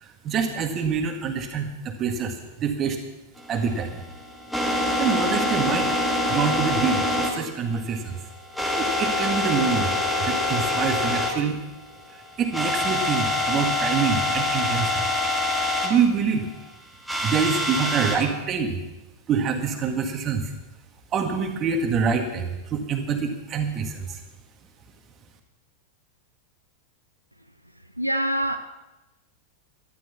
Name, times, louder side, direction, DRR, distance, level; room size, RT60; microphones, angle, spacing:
voice 1, 0.0-3.0 3.5-4.0 5.0-8.2 8.8-9.9 10.2-11.6 12.1-15.0 15.8-16.5 17.2-18.8 19.3-20.5 21.1-24.2, right 6 dB, 30° right, 1.9 m, -26 dB
sound 1, 3.4-11.3 11.6-11.7 12.1-12.2 12.5-15.9 17.1-18.2, left 1 dB, ahead, 2.0 m, -25 dB
voice 2, 28.0-28.6, equal, 90° right, 0.6 m, -24 dB
13.0 x 12.0 x 5.8 m
figure-of-eight pair, 90°, 0 cm